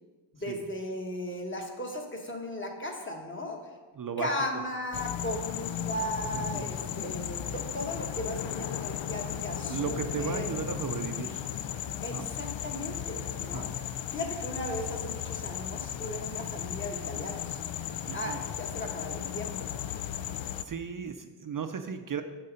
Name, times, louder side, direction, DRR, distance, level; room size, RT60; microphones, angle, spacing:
voice 1, 0.4-3.6 4.2-10.5 12.0-13.7 14.1-17.6 18.1-19.7, left 1 dB, 25° left, 2 dB, 1.2 m, -36 dB
voice 2, 4.0-4.3 6.3-6.7 9.7-11.5 12.1-12.3 13.4-13.7 18.1-18.4 20.6-22.2, right 7 dB, 50° right, 7 dB, 0.5 m, -35 dB
sound 1, 4.9-20.6, left 10 dB, 85° left, 0.5 m, -35 dB
7.7 x 6.7 x 5.1 m, 1.3 s
wide cardioid pair, 155°, 44 cm